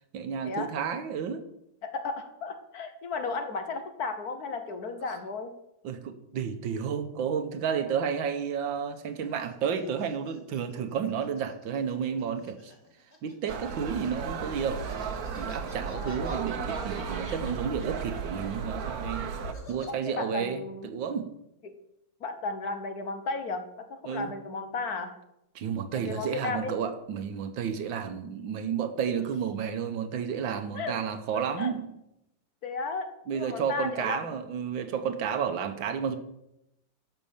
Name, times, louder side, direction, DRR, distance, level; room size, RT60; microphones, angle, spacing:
voice 1, 0.1-1.4 5.8-12.7 13.2-14.8 15.4-19.3 19.7-21.3 24.0-24.3 25.5-31.9 33.3-36.2, right 7 dB, 80° right, 9 dB, 1.7 m, -31 dB
voice 2, 1.8-5.5 15.9-16.4 19.9-20.9 21.6-21.7 22.2-25.1 25.9-26.7 30.7-31.0 31.3-31.7 32.6-34.3, left 3 dB, 55° left, 8 dB, 1.4 m, -34 dB
sound 1, 8.9-14.3 14.7-19.9, left 1 dB, 20° left, 1.9 m, -53 dB
sound 2, 13.5-19.5, right 6 dB, 55° right, 1.3 m, -34 dB
11.5 x 6.0 x 7.1 m, 0.84 s
omnidirectional pair, 2.1 m